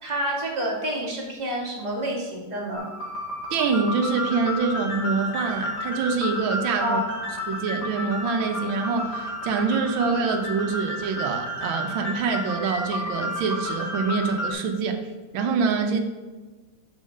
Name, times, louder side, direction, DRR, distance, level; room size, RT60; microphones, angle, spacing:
voice 1, 0.0-2.9 6.8-7.3, right 1 dB, 20° right, -5 dB, 2.3 m, -28 dB
sound 1, 2.7-14.5, equal, 55° left, 2.4 m, -32 dB
voice 2, 3.5-7.0 7.5-15.0 15.3-16.0, right 4 dB, 90° right, 5 dB, 1.6 m, -25 dB
6.4 x 6.1 x 6.6 m, 1.3 s
omnidirectional pair, 2.1 m